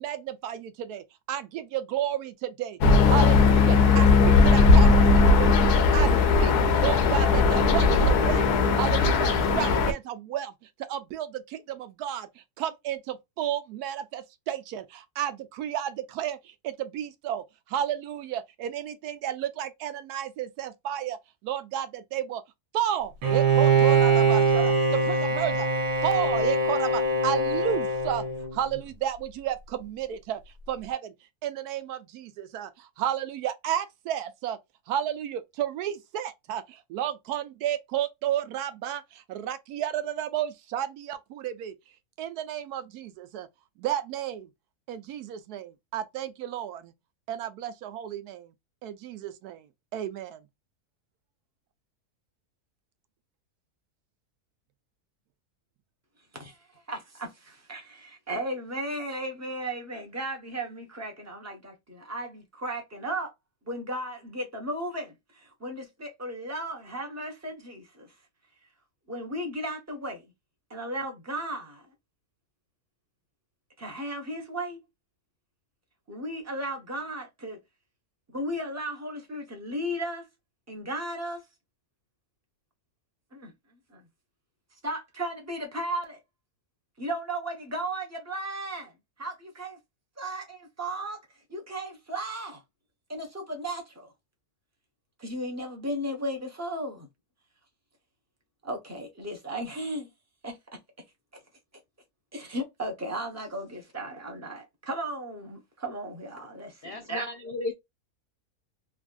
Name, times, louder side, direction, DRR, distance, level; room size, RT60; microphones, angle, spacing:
voice 1, 0.0-2.8 3.1-8.5 8.7-10.5 10.8-21.2 21.4-22.4 22.7-25.7 26.0-28.2 28.5-30.4 30.7-31.1 31.4-34.6 34.9-41.7 42.2-43.5 43.8-44.5 44.9-46.9 47.3-48.5 48.8-49.6 49.9-50.4, right 10 dB, 85° right, 1.1 m, -32 dB
sound 1, 2.8-9.9, left 4 dB, 90° left, 1.2 m, -19 dB
Bowed string instrument, 23.2-28.8, right 3 dB, 65° right, 1.3 m, -23 dB
voice 2, 56.3-63.3 63.7-68.1 69.1-70.2 70.7-71.8 73.8-74.8 76.1-77.6 78.3-80.3 80.7-81.4 83.3-83.5 83.9-84.0 84.8-86.2 87.0-88.9 89.2-89.8 90.2-91.2 91.5-92.6 93.1-94.1 95.2-97.1 98.6-100.1 100.4-100.6 102.3-107.3, right 1 dB, 15° right, 0.6 m, -35 dB
voice 3, 106.8-107.7, left 2 dB, 70° left, 0.5 m, -34 dB
3.4 x 2.5 x 2.3 m
omnidirectional pair, 1.6 m